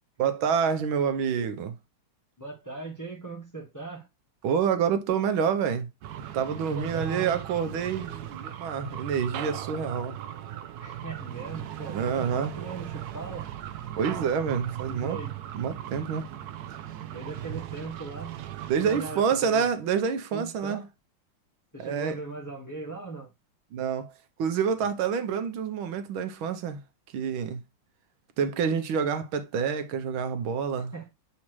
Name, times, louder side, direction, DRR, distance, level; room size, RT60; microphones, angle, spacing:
voice 1, 0.2-1.7 4.4-5.9 6.3-10.2 11.9-12.5 14.0-15.2 15.5-16.2 18.7-20.8 21.8-22.2 23.7-24.1 24.4-26.8 27.1-27.6 28.4-30.9, right 7 dB, 90° right, 1.7 m, -27 dB
voice 2, 2.4-4.1 6.7-7.4 10.8-13.5 14.9-15.4 17.1-18.4 18.7-19.7 20.3-20.9 21.7-23.3 24.8-24.9 30.9-31.1, right 3 dB, 10° left, 1.5 m, -39 dB
sound 1, 6.0-19.2, right 11 dB, 70° right, 0.9 m, -38 dB
7.2 x 4.2 x 3.1 m
omnidirectional pair, 2.2 m